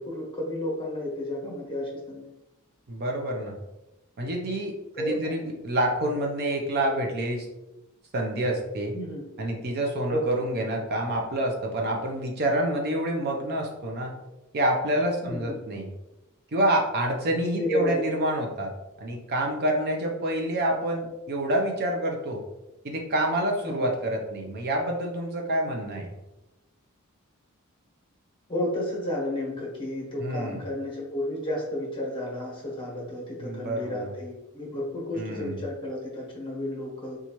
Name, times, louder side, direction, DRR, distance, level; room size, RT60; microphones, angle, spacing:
voice 1, 0.0-2.2 5.0-5.5 8.9-9.2 10.1-10.2 15.2-15.5 17.6-18.0 23.6-23.9 28.5-37.2, left 1 dB, 25° left, -4 dB, 1.1 m, -32 dB
voice 2, 2.9-3.5 4.2-7.5 8.1-8.9 9.4-14.1 14.5-15.9 16.5-18.7 19.0-22.4 22.8-26.1 30.2-30.6 33.4-34.1 35.2-35.6, right 1 dB, 50° right, 1 dB, 0.5 m, -27 dB
4.2 x 2.4 x 3.0 m, 0.95 s
head